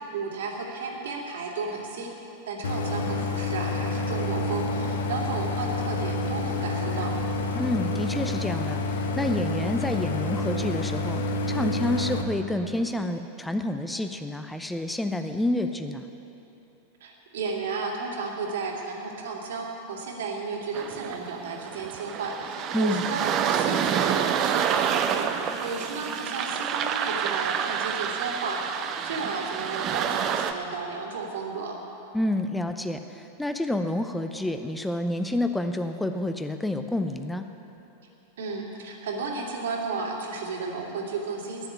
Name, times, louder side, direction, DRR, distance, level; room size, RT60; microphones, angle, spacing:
voice 1, 0.1-2.1 2.5-7.2 17.0-31.8 38.4-41.7, right 4 dB, 60° right, 0 dB, 2.2 m, -33 dB
Idling, 2.6-12.2, left 2 dB, 65° left, 1.2 m, -28 dB
voice 2, 7.6-11.2 11.5-16.0 22.7-23.0 32.1-37.4, left 1 dB, 5° left, 7 dB, 0.6 m, -28 dB
sound 1, 20.7-30.5, right 8 dB, 35° right, 0.8 m, -28 dB
11.5 x 9.9 x 9.7 m, 3.0 s
figure-of-eight pair, 90°, 0 cm